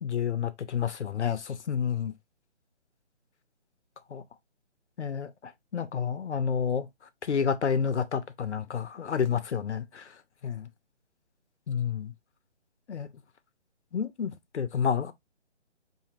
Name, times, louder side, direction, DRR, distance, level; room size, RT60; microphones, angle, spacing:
voice 1, 0.0-2.1 4.1-4.2 5.0-6.9 7.2-10.1 10.4-10.7 11.7-12.1 12.9-13.1 13.9-15.1, left 7 dB, 70° left, 0.7 m, -30 dB
4.9 x 2.8 x 2.7 m
figure-of-eight pair, 150°, 35 cm